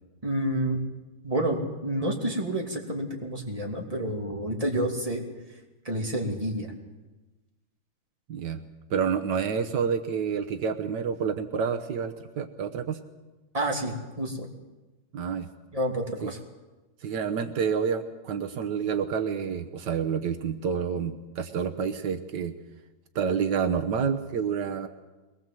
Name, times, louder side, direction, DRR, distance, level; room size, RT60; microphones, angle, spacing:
voice 1, 0.2-0.8 1.2-5.2 5.8-6.7 13.5-14.5 15.7-16.4, right 1 dB, 20° right, 1 dB, 2.8 m, -29 dB
voice 2, 8.3-8.6 8.9-13.0 15.1-15.5 16.2-16.3 17.0-22.5 23.1-24.9, right 6 dB, 80° right, 8 dB, 1.6 m, -28 dB
22.5 x 19.5 x 7.6 m, 1.2 s
omnidirectional pair, 1.8 m